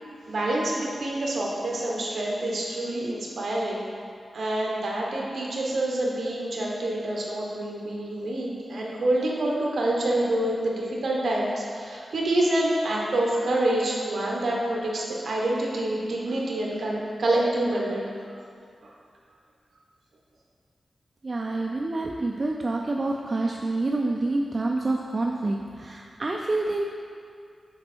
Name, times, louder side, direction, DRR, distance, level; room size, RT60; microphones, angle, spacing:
voice 1, 0.3-3.8 4.3-18.1, right 1 dB, 60° right, -3 dB, 1.2 m, -27 dB
voice 2, 21.2-26.8, right 2 dB, 30° right, 0 dB, 0.3 m, -27 dB
7.5 x 4.2 x 4.5 m, 2.3 s
wide cardioid pair, 160°, 0 cm